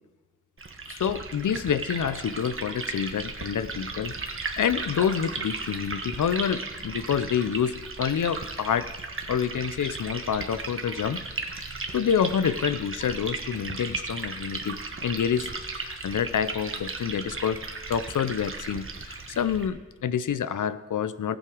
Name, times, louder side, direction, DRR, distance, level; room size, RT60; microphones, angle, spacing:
Liquid, 0.6-19.7, right 3 dB, 40° right, 1.2 m, -36 dB
voice 1, 0.9-8.9 9.3-11.2 11.9-15.5 15.7-21.4, left 8 dB, 75° left, 15 dB, 0.6 m, -28 dB
17.5 x 7.6 x 4.9 m, 1.2 s
wide cardioid pair, 120°, 31 cm